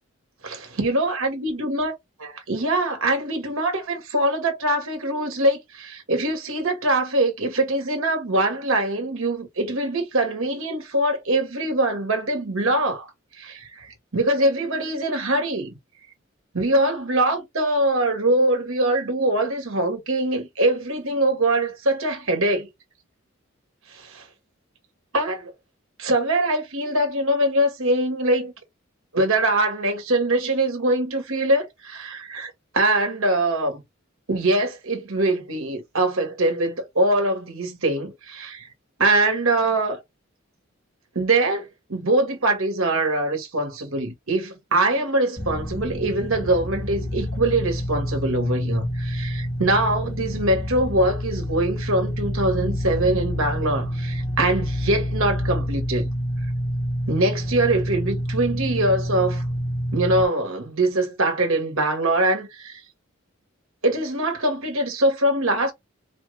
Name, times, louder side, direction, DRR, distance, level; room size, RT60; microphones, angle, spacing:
voice 1, 0.4-1.9 2.2-13.1 13.4-13.9 14.1-15.7 16.5-22.7 23.9-24.3 25.1-25.5 26.0-28.5 29.1-33.8 34.3-38.7 39.0-40.0 41.1-56.1 57.1-59.5 59.9-62.8 63.8-65.7, right 1 dB, 80° right, 1.6 m, -23 dB
sound 1, 45.4-60.2, equal, 20° left, 0.9 m, -28 dB
5.0 x 2.3 x 3.3 m
head